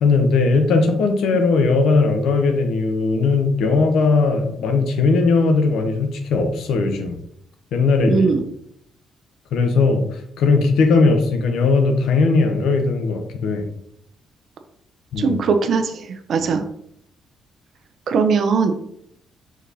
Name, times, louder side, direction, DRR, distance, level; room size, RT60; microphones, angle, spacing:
voice 1, 0.0-7.2 7.7-8.4 9.5-10.0 10.4-13.6 15.1-15.4 16.4-16.5, left 4 dB, 80° left, 6 dB, 0.7 m, -18 dB
voice 2, 8.1-8.4 15.2-16.6 18.1-18.7, right 5 dB, 60° right, 7 dB, 0.6 m, -19 dB
5.1 x 3.9 x 2.7 m, 0.73 s
cardioid pair, 90°, 0 cm